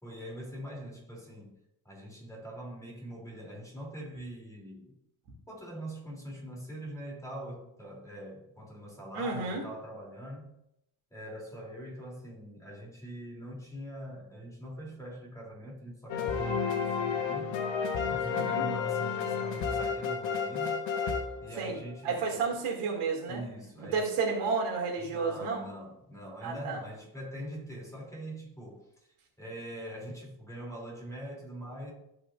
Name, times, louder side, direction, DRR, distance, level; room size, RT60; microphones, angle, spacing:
voice 1, 0.0-1.6 1.8-4.9 5.5-10.5 11.1-17.5 18.1-20.8 21.4-22.2 23.3-24.1 25.0-28.9 29.4-31.9, right 1 dB, 5° left, -3 dB, 3.0 m, -43 dB
voice 2, 9.1-9.6 18.3-18.6 21.6-21.8 22.0-23.4 23.9-25.6 26.4-26.8, right 4 dB, 85° right, -1 dB, 2.7 m, -31 dB
sound 1, 16.1-22.0, left 6 dB, 60° left, 1.3 m, -31 dB
14.0 x 5.6 x 2.5 m, 0.81 s
cardioid pair, 125°, 50 cm